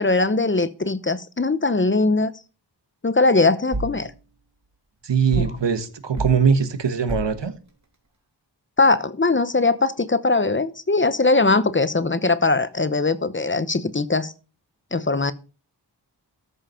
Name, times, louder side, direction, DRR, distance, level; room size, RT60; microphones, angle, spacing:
voice 1, 0.0-2.3 3.0-4.1 5.4-5.5 8.8-14.3 14.9-15.3, left 3 dB, 30° left, 0.8 m, -20 dB
sound 1, 3.7-4.0 5.3-5.6 6.2-6.4 7.1-7.4, right 1 dB, 40° right, 2.8 m, -29 dB
voice 2, 5.0-7.5, right 6 dB, 85° right, 1.4 m, -21 dB
13.5 x 5.6 x 5.7 m
wide cardioid pair, 95°, 42 cm